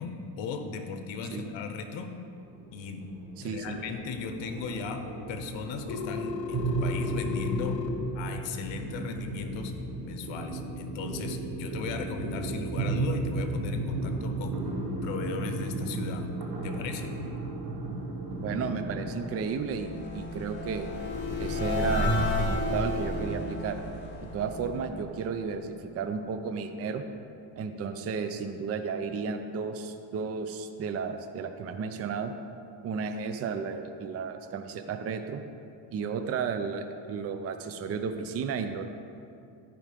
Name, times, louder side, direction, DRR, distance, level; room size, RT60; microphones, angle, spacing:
voice 1, 0.0-2.1 2.7-3.1 3.4-7.8 8.1-9.7 10.0-14.6 15.0-16.3 16.6-17.1, left 5 dB, 70° left, 7 dB, 1.0 m, -37 dB
sound 1, 2.4-19.2, right 2 dB, 55° right, 1.7 m, -34 dB
voice 2, 3.4-3.7 18.4-20.9 21.4-23.8 24.2-27.0 27.6-32.3 32.8-35.4 35.9-38.8, right 5 dB, 35° right, 8 dB, 0.4 m, -33 dB
Telephone, 5.9-7.9, left 7 dB, 40° left, 0.6 m, -35 dB
sound 2, 18.5-25.7, left 1 dB, 20° left, 1.8 m, -32 dB
10.5 x 5.0 x 5.0 m, 2.5 s
cardioid pair, 135°, 47 cm